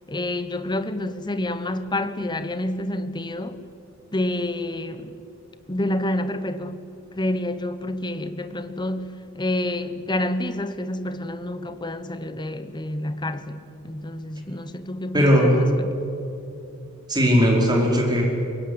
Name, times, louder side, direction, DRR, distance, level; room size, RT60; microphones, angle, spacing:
voice 1, 0.1-3.6 4.1-5.2 5.7-6.8 7.2-15.9, left 1 dB, 20° left, 1.1 m, -28 dB
voice 2, 15.1-15.6 17.1-18.2, equal, 20° right, 5.0 m, -18 dB
24.0 x 22.5 x 9.7 m
head